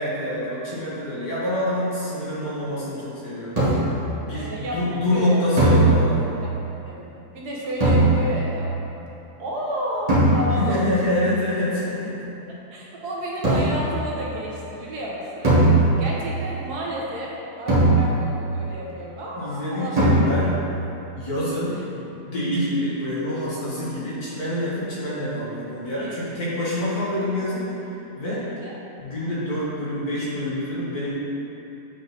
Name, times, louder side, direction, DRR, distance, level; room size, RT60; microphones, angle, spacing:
voice 1, 0.0-3.6 4.2-6.3 10.5-12.3 19.4-20.6 21.1-27.9 28.2-28.4 29.0-31.1, left 1 dB, 65° left, -9 dB, 1.9 m, -26 dB
sound 1, 3.6-4.1 5.6-6.4 7.8-8.6 10.1-10.8 13.4-14.0 15.4-16.3 17.7-18.5 20.0-20.7, right 2 dB, 25° right, 1.5 m, -19 dB
voice 2, 4.3-5.4 6.4-6.6 6.8-7.1 7.3-8.7 9.4-10.8 12.5-20.2 25.9-26.2 28.5-28.8, equal, 70° right, -4 dB, 1.5 m, -32 dB
7.6 x 3.8 x 4.1 m, 2.9 s
omnidirectional pair, 1.8 m